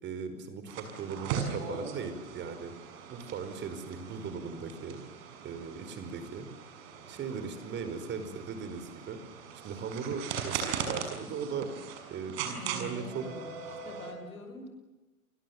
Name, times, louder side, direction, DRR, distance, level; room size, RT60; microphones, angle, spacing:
voice 1, 0.0-2.7 3.1-5.0 5.4-6.5 7.1-9.2 9.6-11.7 12.1-13.2, right 6 dB, 25° right, 10 dB, 5.0 m, -38 dB
sound 1, 0.7-14.1, right 7 dB, 45° right, 6.6 m, -40 dB
voice 2, 12.5-14.7, left 1 dB, 75° left, 6 dB, 7.5 m, -45 dB
29.5 x 24.5 x 7.3 m, 1.1 s
figure-of-eight pair, 105°, 43 cm